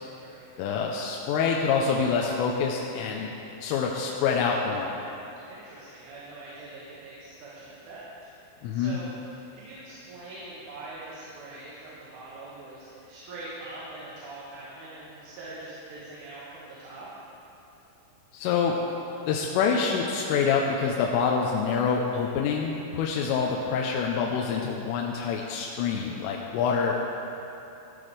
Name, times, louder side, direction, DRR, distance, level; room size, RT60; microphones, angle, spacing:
voice 1, 0.6-3.3 3.6-4.9 8.6-9.0 18.3-18.7 19.3-27.0, left 6 dB, 85° left, -1 dB, 3.3 m, -26 dB
voice 2, 5.5-8.1 8.7-9.1 9.5-17.1, right 2 dB, 75° right, -8 dB, 4.2 m, -43 dB
15.0 x 12.5 x 3.3 m, 2.9 s
omnidirectional pair, 5.7 m